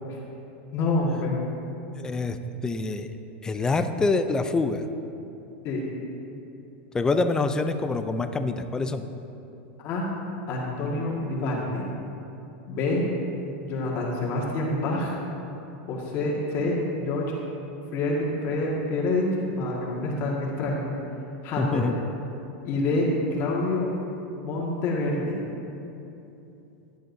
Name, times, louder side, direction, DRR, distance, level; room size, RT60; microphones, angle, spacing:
voice 1, 0.7-1.4 5.6-5.8 9.8-10.1 10.5-11.8 12.7-13.0 13.6-15.2 15.9-17.3 17.9-19.3 19.6-20.9 21.4-21.9 22.6-23.9 24.4-25.4, left 2 dB, 40° left, -4 dB, 1.8 m, -27 dB
voice 2, 2.0-2.4 2.6-3.1 3.4-4.8 6.9-9.0 21.6-21.9, left 3 dB, 10° left, 8 dB, 0.4 m, -25 dB
15.0 x 10.5 x 2.7 m, 2.9 s
supercardioid pair, 150°, 6 cm